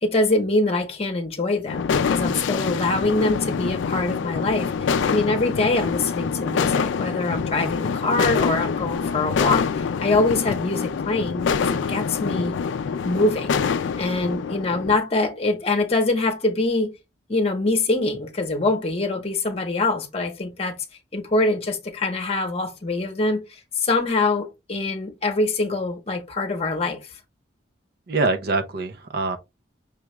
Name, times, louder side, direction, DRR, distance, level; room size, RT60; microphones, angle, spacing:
voice 1, 0.0-12.6 13.0-13.6 14.0-16.9 17.3-20.8 21.1-27.0, left 2 dB, 30° left, 0.8 m, -24 dB
sound 1, 1.7-15.0, left 6 dB, 75° left, 0.3 m, -25 dB
voice 2, 28.1-29.4, right 3 dB, 55° right, 0.5 m, -24 dB
5.8 x 2.3 x 3.0 m
head